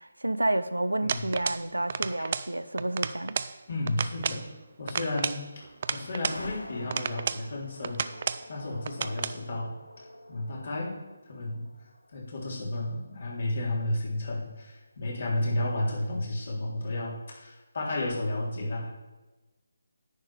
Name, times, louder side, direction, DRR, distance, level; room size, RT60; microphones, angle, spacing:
voice 1, 0.0-3.4, right 1 dB, 85° right, 0.6 m, -30 dB
sound 1, 1.1-1.6 1.9-2.5 2.8-3.5 3.9-4.4 4.9-6.4 6.9-7.4 7.8-8.4 8.8-9.4, right 6 dB, 40° right, 0.4 m, -32 dB
voice 2, 3.7-4.5 4.8-8.1 8.5-11.0 11.3-11.7 12.1-18.9, left 1 dB, 55° left, 3.5 m, -32 dB
sound 2, 5.3-14.9, left 1 dB, 85° left, 1.0 m, -48 dB
10.5 x 8.8 x 4.4 m
figure-of-eight pair, 150°, 0 cm